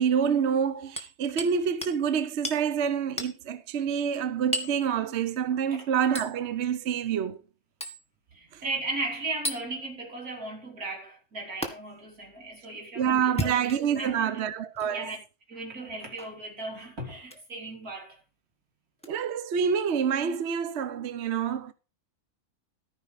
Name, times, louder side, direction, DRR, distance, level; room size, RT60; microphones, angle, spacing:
voice 1, 0.0-7.4 8.5-8.6 13.0-15.1 19.1-21.7, right 7 dB, 55° right, 0.9 m, -27 dB
Hammer, 1.0-1.6 1.8-2.0 2.4-2.6 3.2-3.4 4.5-4.8 6.2-6.3 7.8-8.0 9.4-9.6 11.6-11.7 13.2-14.0 14.8-14.9 16.2-16.4 17.2-17.4 19.0-19.1, equal, 5° left, 1.9 m, -33 dB
voice 2, 8.3-13.7 14.0-14.5 14.9-15.2 15.5-18.2, right 2 dB, 75° right, 4.2 m, -36 dB
14.0 x 5.3 x 5.7 m
omnidirectional pair, 1.6 m